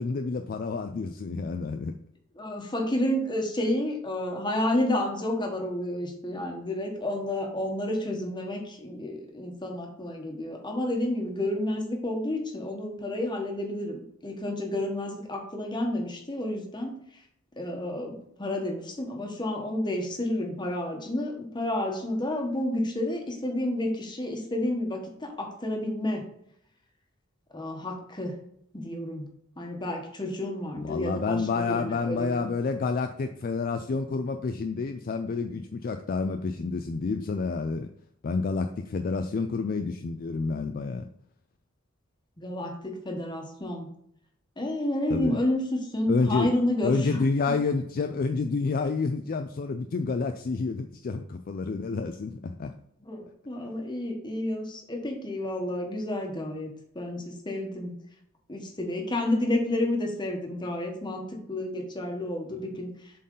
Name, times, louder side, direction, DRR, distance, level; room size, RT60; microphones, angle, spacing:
voice 1, 0.0-1.9 30.8-37.9 38.2-41.1 45.1-45.4 46.1-46.5 46.8-52.7, left 4 dB, 45° left, 6 dB, 0.4 m, -29 dB
voice 2, 2.4-17.0 17.6-26.2 27.5-28.3 28.7-29.2 29.6-32.5 42.4-43.9 44.6-47.2 53.0-57.9 58.5-62.9, left 1 dB, 20° left, 2 dB, 1.2 m, -30 dB
7.5 x 4.0 x 3.9 m, 0.70 s
head